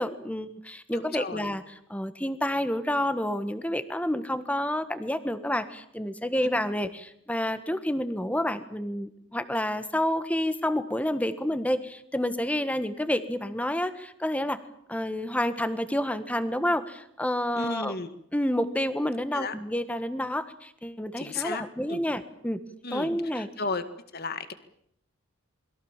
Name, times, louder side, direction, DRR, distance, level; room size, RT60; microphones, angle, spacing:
voice 1, 0.0-1.6 1.9-14.6 14.9-17.9 18.3-22.6 22.9-23.5, left 1 dB, 5° left, 11 dB, 1.5 m, -29 dB
voice 2, 0.9-1.5 6.4-6.5 17.6-18.1 19.3-19.5 21.2-22.0 22.8-23.8 24.1-24.5, left 3 dB, 50° left, 11 dB, 2.0 m, -34 dB
28.0 x 22.0 x 7.4 m, 0.70 s
head